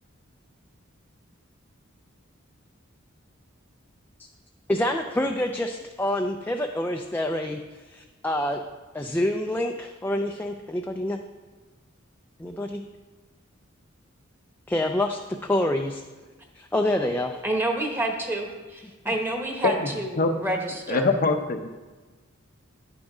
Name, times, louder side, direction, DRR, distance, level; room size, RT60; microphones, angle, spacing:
voice 1, 4.7-7.6 7.9-8.6 8.9-11.2 12.4-12.8 14.7-16.0 16.6-17.4, left 1 dB, 10° left, 3 dB, 0.4 m, -27 dB
voice 2, 17.4-21.1, right 1 dB, 10° right, 2 dB, 1.1 m, -28 dB
voice 3, 20.9-21.7, left 3 dB, 45° left, 5 dB, 0.7 m, -23 dB
9.7 x 6.2 x 4.9 m, 1.3 s
head